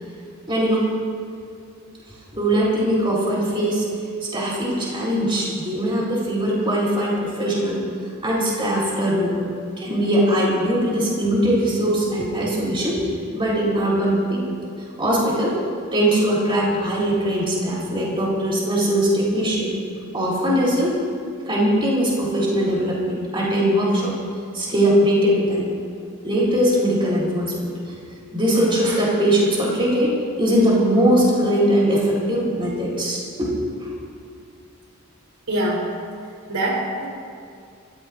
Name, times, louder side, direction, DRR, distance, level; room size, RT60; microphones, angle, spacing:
voice 1, 0.5-0.9 2.3-3.8 4.3-7.8 8.2-9.4 9.8-13.0 13.3-14.4 15.0-15.6 15.9-19.7 20.1-20.9 21.4-24.1 24.5-25.7 26.2-27.7 28.3-33.5 33.8-34.0, equal, 25° right, -5 dB, 4.0 m, -21 dB
voice 2, 35.5-35.9 36.5-37.1, right 1 dB, 75° right, -3 dB, 4.1 m, -23 dB
27.5 x 15.0 x 2.6 m, 2.3 s
head